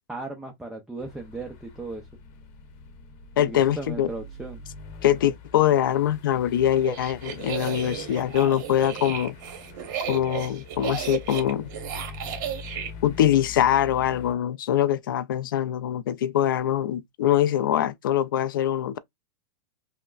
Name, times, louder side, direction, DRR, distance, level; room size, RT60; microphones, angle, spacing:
voice 1, 0.1-2.1 3.4-4.6, right 2 dB, 5° right, 0.6 m, -36 dB
sound 1, 1.0-14.3, left 4 dB, 45° left, 0.9 m, -44 dB
voice 2, 3.4-4.1 5.0-9.4 10.1-11.7 13.0-19.0, left 11 dB, 90° left, 0.5 m, -23 dB
sound 2, 6.7-12.9, right 9 dB, 60° right, 1.1 m, -34 dB
5.6 x 2.1 x 2.4 m
supercardioid pair, 150°, 11 cm